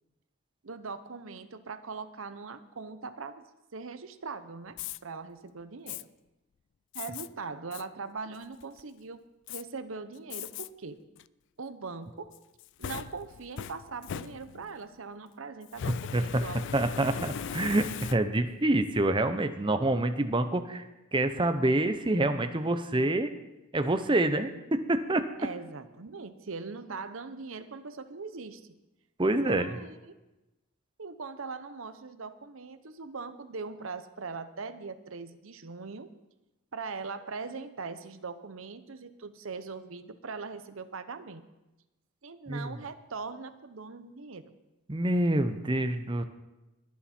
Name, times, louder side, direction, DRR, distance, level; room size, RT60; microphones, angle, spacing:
voice 1, 0.6-3.4 3.7-4.8 5.0-6.1 6.9-9.2 9.5-11.0 11.6-12.3 12.8-17.3 25.4-28.7 29.2-30.1 31.0-36.1 36.7-41.4 42.2-44.5, right 4 dB, 70° right, 11 dB, 0.8 m, -41 dB
Fire, 4.7-5.0 5.9-6.0 6.9-7.3 7.7-7.8 8.4-8.8 9.5-9.6 10.3-10.7 11.2-11.3 12.3-14.8 15.7-18.5, left 8 dB, 55° left, 0.3 m, -39 dB
voice 2, 15.9-20.8 21.1-23.3 23.7-25.2 29.2-29.8 42.5-42.8 44.9-46.2, right 1 dB, 25° right, 9 dB, 0.7 m, -27 dB
21.5 x 7.2 x 4.4 m, 1.0 s
head